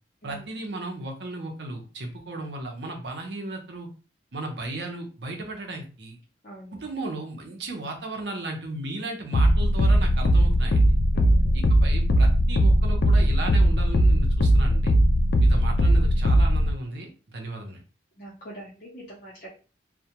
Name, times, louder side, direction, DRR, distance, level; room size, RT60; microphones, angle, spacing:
voice 1, 0.2-3.9 4.3-6.2 6.7-10.9 11.5-15.0 15.4-17.8, right 2 dB, 65° right, 2 dB, 0.7 m, -35 dB
voice 2, 6.4-6.8 11.1-11.6 18.2-19.5, right 1 dB, 45° left, -7 dB, 0.7 m, -43 dB
sound 1, 9.3-16.7, equal, 65° left, 0.4 m, -19 dB
2.2 x 2.2 x 2.8 m, 0.35 s
head